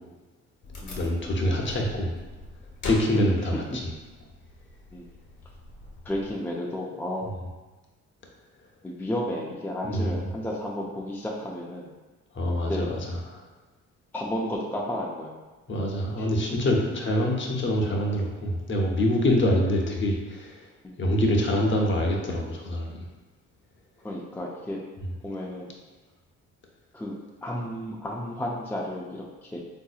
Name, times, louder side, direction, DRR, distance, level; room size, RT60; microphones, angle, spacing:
Wood, 0.6-6.3, left 1 dB, 70° left, 1.0 m, -42 dB
voice 1, 1.0-2.1 2.8-3.9 9.8-10.2 12.3-13.4 15.7-20.7 21.0-23.1 25.0-25.1, left 1 dB, 40° left, 0 dB, 0.7 m, -25 dB
voice 2, 6.1-7.3 8.8-11.9 12.7-12.8 14.1-15.3 16.2-16.3 17.8-18.0 20.8-20.9 24.0-24.8 25.2-25.7 26.9-27.1 27.4-29.6, left 1 dB, 5° left, -3 dB, 0.3 m, -32 dB
3.6 x 2.7 x 2.4 m, 1.2 s
cardioid pair, 90°, 30 cm